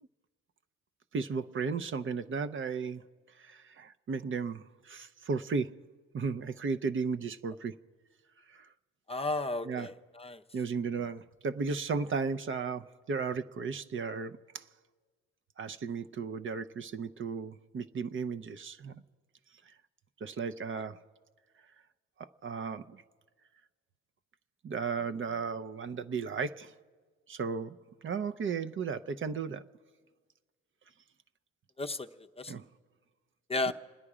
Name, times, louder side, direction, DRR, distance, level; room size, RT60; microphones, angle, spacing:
voice 1, 1.1-3.0 3.4-5.7 6.1-7.8 8.5-8.7 9.6-9.9 10.5-14.6 15.6-19.0 20.2-21.0 22.2-23.0 24.6-26.7 27.3-27.8 28.0-29.6 32.5-32.7 33.7-33.8, right 5 dB, 40° right, 0.6 m, -35 dB
voice 2, 9.1-10.4 31.8-32.1 32.4-32.5 33.5-33.7, left 2 dB, 20° left, 0.6 m, -33 dB
28.0 x 9.9 x 4.9 m
cardioid pair, 90°, 30 cm